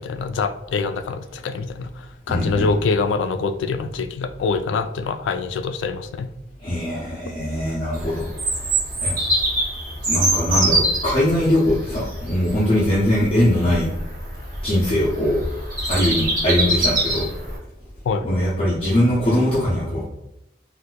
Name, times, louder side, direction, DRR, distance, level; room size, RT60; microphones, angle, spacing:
voice 1, 0.0-6.3 18.0-18.4, left 4 dB, 85° left, 10 dB, 0.3 m, -25 dB
voice 2, 2.3-2.7 6.6-8.7 9.0-9.2 10.1-13.9 14.6-15.4 15.9-17.3 18.2-20.1, left 1 dB, 30° left, -8 dB, 0.7 m, -21 dB
Bird vocalization bird call bird song, 7.9-17.6, right 1 dB, 45° right, 1.1 m, -24 dB
4.0 x 2.5 x 2.3 m, 0.87 s
head